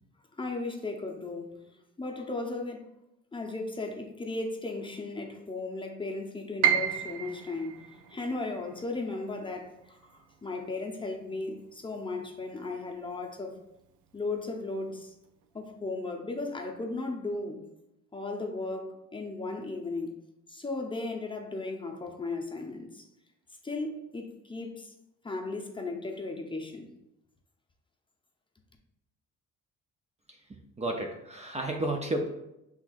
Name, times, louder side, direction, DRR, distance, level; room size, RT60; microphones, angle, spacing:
voice 1, 0.3-1.6 2.0-2.8 3.3-7.8 8.1-13.6 14.1-15.1 15.5-17.6 18.1-20.2 20.5-23.1 23.6-24.9 25.2-26.9, left 3 dB, 15° left, 0.7 m, -36 dB
Piano, 6.6-12.6 12.9-14.0 14.4-14.5 15.3-15.6, right 9 dB, 85° right, 0.5 m, -33 dB
voice 2, 30.8-32.3, right 1 dB, 20° right, 0.5 m, -31 dB
5.9 x 3.5 x 2.4 m
cardioid pair, 90°, 30 cm